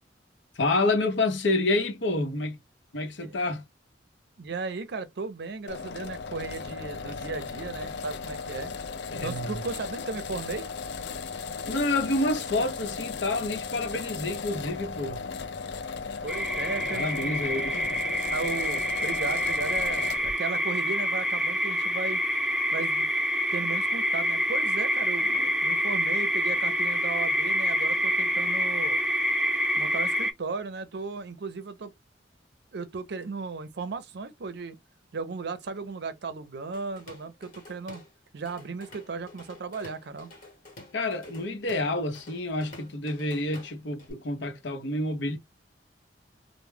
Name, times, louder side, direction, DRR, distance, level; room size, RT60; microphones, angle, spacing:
voice 1, 0.5-2.6 2.9-3.6 9.1-9.6 11.7-15.3 16.9-18.0 25.2-25.5 40.9-45.4, left 2 dB, 85° left, 0.8 m, -28 dB
voice 2, 4.4-8.7 9.2-10.7 16.2-17.4 17.7-17.8 18.3-22.2 22.7-23.1 23.5-25.3 25.6-29.0 29.8-31.9 32.7-34.8 35.1-38.0 38.3-40.3, right 4 dB, 65° right, 0.5 m, -36 dB
sound 1, 5.7-20.3, left 5 dB, 70° left, 0.4 m, -36 dB
sound 2, 16.3-30.3, equal, 5° right, 0.3 m, -27 dB
Drum kit / Drum, 36.7-38.1 38.5-44.1, left 2 dB, 50° left, 1.1 m, -49 dB
2.2 x 2.1 x 3.2 m
head